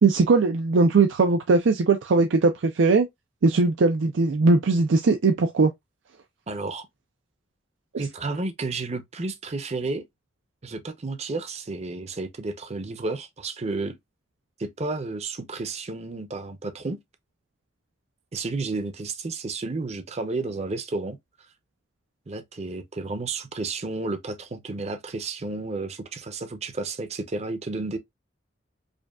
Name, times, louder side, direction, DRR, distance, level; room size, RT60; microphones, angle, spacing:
voice 1, 0.0-3.1 3.4-5.7 7.9-8.0, right 3 dB, 90° right, 0.5 m, -20 dB
voice 2, 6.5-6.9 8.0-10.0 10.6-14.0 14.6-17.0 18.3-21.2 22.3-28.0, right 3 dB, 35° right, 0.6 m, -31 dB
5.0 x 2.3 x 2.3 m
head